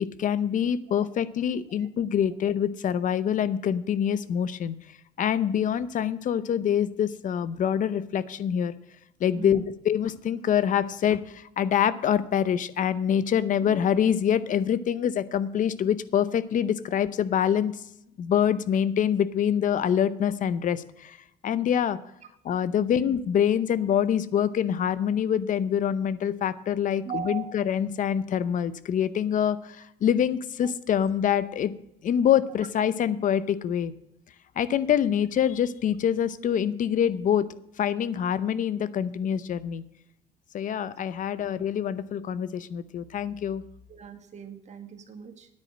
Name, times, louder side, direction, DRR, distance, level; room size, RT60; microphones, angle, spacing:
voice 1, 0.0-4.7 5.2-8.7 9.2-17.7 18.2-21.2 21.4-22.0 22.4-31.7 32.0-33.9 34.6-39.8 40.5-43.6, left 9 dB, 50° left, 16 dB, 0.7 m, -25 dB
voice 2, 27.0-27.5 43.9-45.5, right 8 dB, 45° right, 6 dB, 1.8 m, -38 dB
9.8 x 8.6 x 6.4 m, 0.81 s
cardioid pair, 110°, 17 cm